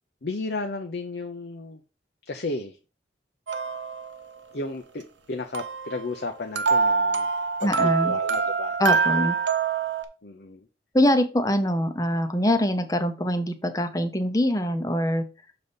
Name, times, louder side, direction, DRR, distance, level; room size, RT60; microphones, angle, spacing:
voice 1, 0.2-1.8 2.3-2.8 4.5-7.3 7.6-8.8 10.2-10.6, left 3 dB, 55° left, 4 dB, 0.7 m, -33 dB
sound 1, 3.5-4.4 5.5-10.0, right 5 dB, 75° right, 1.0 m, -25 dB
voice 2, 7.6-8.1 8.8-9.4 10.9-15.2, equal, 20° left, 8 dB, 0.8 m, -23 dB
6.6 x 4.1 x 5.2 m, 0.32 s
head